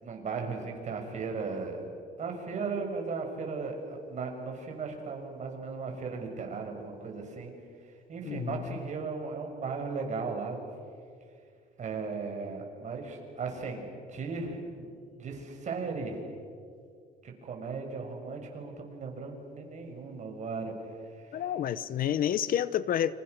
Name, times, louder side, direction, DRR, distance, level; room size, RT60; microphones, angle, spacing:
voice 1, 0.0-1.9 2.2-7.5 8.1-10.6 11.8-14.9 15.1-16.2 17.2-20.7 21.3-21.4, right 4 dB, 45° right, 2 dB, 6.4 m, -36 dB
voice 2, 8.2-8.8 21.3-23.2, left 10 dB, 55° left, 17 dB, 0.9 m, -29 dB
29.5 x 27.0 x 6.7 m, 2.3 s
cardioid pair, 110°, 17 cm